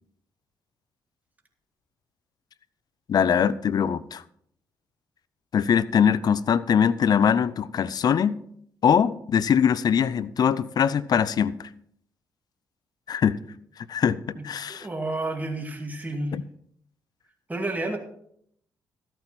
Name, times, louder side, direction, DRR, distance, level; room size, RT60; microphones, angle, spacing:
voice 1, 3.1-4.2 5.5-8.4 8.8-11.7 13.1-13.4 13.8-14.9 16.3-16.4, left 8 dB, 55° left, 0.5 m, -22 dB
voice 2, 14.4-16.3 17.5-18.0, right 2 dB, 20° right, 2.3 m, -31 dB
13.5 x 9.0 x 4.2 m
supercardioid pair, 50°, 8 cm